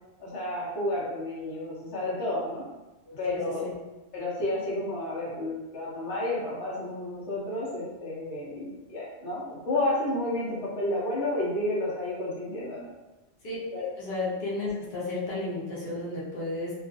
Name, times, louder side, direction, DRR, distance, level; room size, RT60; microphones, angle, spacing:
voice 1, 0.2-2.6 3.2-3.6 4.1-12.9 13.7-13.9, left 1 dB, 80° left, -6 dB, 1.0 m, -31 dB
voice 2, 3.1-3.7 13.4-13.6 14.0-16.7, left 2 dB, 55° left, -7 dB, 0.9 m, -33 dB
2.4 x 2.3 x 2.4 m, 1.1 s
omnidirectional pair, 1.1 m